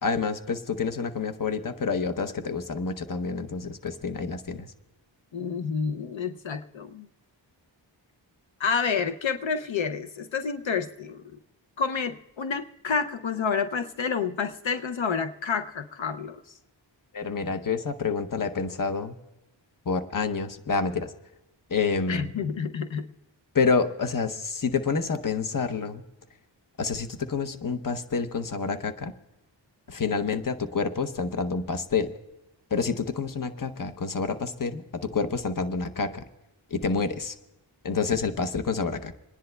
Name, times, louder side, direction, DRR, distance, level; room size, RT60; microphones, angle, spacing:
voice 1, 0.0-4.7 17.1-19.1 19.9-21.1 21.7-22.3 23.5-26.0 26.8-29.1 29.9-32.1 32.7-36.2 36.7-37.3 37.8-39.1, left 5 dB, 45° left, 8 dB, 0.8 m, -28 dB
voice 2, 5.3-7.1 8.6-11.2 11.8-16.5 22.1-23.0, left 6 dB, 75° left, 9 dB, 0.6 m, -29 dB
27.5 x 10.0 x 2.2 m, 1.0 s
wide cardioid pair, 40°, 46 cm